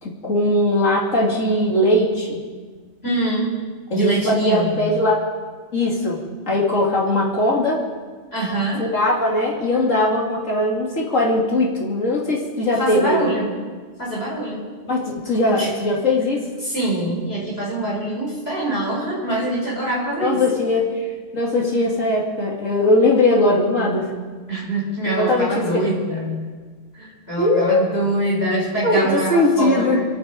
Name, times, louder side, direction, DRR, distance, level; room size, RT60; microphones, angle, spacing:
voice 1, 0.0-2.4 3.9-5.2 5.7-6.2 6.5-7.8 8.8-13.3 14.8-16.4 20.2-21.1 21.3-24.1 25.2-25.7 27.4-27.9 28.8-30.0, left 1 dB, 75° left, -3 dB, 3.0 m, -20 dB
voice 2, 3.0-3.5 3.9-4.8 8.3-8.9 12.8-13.5 14.0-14.6 15.5-15.7 16.6-20.4 24.5-26.4 26.9-30.1, right 1 dB, 50° left, -4 dB, 5.4 m, -24 dB
27.0 x 9.2 x 5.2 m, 1.5 s
omnidirectional pair, 1.3 m